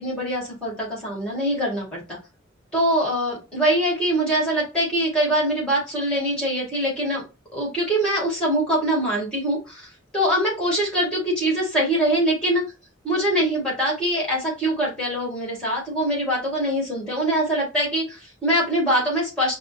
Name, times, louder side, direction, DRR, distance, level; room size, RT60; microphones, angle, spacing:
voice 1, 0.0-2.2 2.7-7.2 7.5-12.6 13.0-19.6, right 1 dB, 5° left, -4 dB, 1.9 m, -23 dB
4.8 x 2.1 x 2.7 m, 0.29 s
head